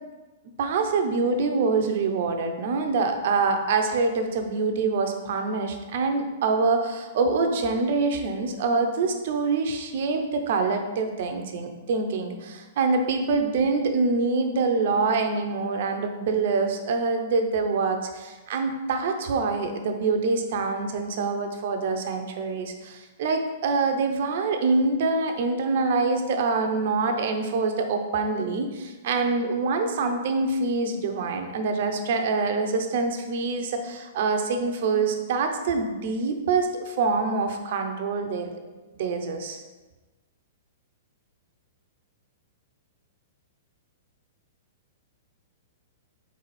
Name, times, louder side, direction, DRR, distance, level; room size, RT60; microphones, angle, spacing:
voice 1, 0.6-38.5 39.0-39.6, right 4 dB, 55° right, 5 dB, 0.6 m, -25 dB
4.0 x 3.9 x 3.2 m, 1.2 s
figure-of-eight pair, 110°, 0 cm